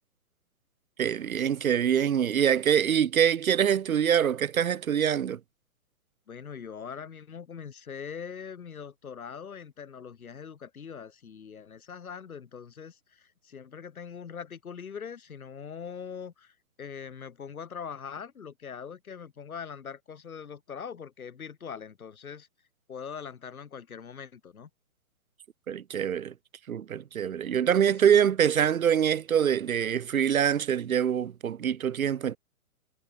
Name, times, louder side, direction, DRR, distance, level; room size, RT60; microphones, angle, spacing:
voice 1, 1.0-5.4 25.7-26.3 26.7-32.4, right 8 dB, 70° right, 1.5 m, -24 dB
voice 2, 6.3-22.5 22.9-24.7 27.8-28.2, left 7 dB, 75° left, 7.8 m, -42 dB
hypercardioid pair, 155°, 43 cm